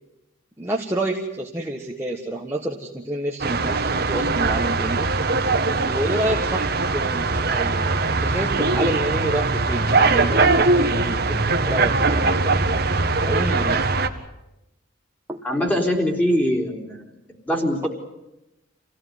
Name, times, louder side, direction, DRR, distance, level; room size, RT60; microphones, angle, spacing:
voice 1, 0.6-5.1 5.9-12.6 13.2-13.9 15.3-15.4, right 1 dB, 10° right, -1 dB, 1.5 m, -29 dB
sound 1, 3.4-14.1, right 3 dB, 50° right, 1.6 m, -21 dB
voice 2, 15.4-17.0 17.5-17.9, equal, 5° left, 1 dB, 3.7 m, -22 dB
27.0 x 17.0 x 9.5 m, 0.94 s
head